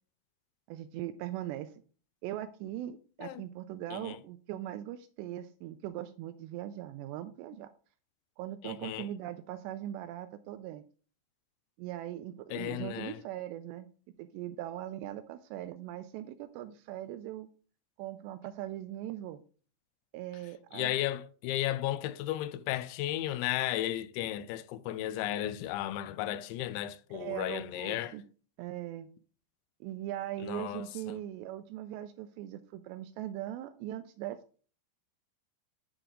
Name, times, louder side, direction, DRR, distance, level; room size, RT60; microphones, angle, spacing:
voice 1, 0.7-1.7 2.2-7.7 8.4-10.8 11.8-13.9 14.2-17.5 18.0-19.4 20.1-20.9 27.1-28.2 28.6-29.1 29.8-34.6, right 13 dB, 85° right, 2.5 m, -40 dB
voice 2, 8.6-9.1 12.5-13.2 20.7-28.2 30.4-31.2, left 13 dB, 85° left, 2.8 m, -34 dB
11.0 x 4.5 x 3.8 m
omnidirectional pair, 5.3 m